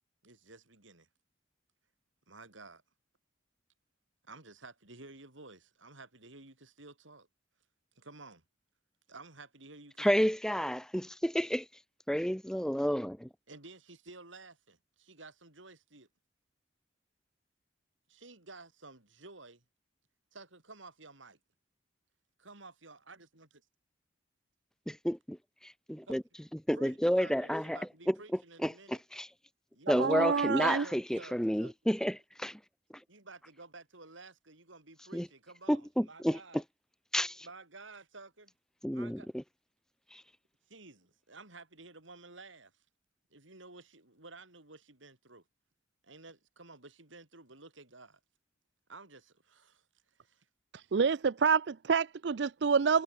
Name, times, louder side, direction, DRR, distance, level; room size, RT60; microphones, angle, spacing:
voice 1, 0.2-1.1 2.3-2.8 4.2-7.3 8.0-8.4 9.1-10.1 13.5-16.1 18.1-19.6 20.3-21.4 22.4-23.6 26.1-26.2 26.7-29.0 29.7-30.5 30.8-31.7 33.1-36.6 37.4-38.5 38.9-39.3 40.7-42.7 43.3-45.4 46.0-48.2 48.9-50.5, right 3 dB, 80° right, 6.0 m, -52 dB
voice 2, 10.0-11.6 12.1-13.3 24.9-25.4 25.6-26.2 26.7-27.8 28.1-28.2 28.6-29.3 29.9-32.6 35.1-35.3 35.7-36.6 37.1-37.4 38.8-39.4 40.1-40.2, equal, 5° left, 1.2 m, -30 dB
voice 3, 29.9-30.9 50.9-53.0, right 6 dB, 60° right, 0.4 m, -27 dB
head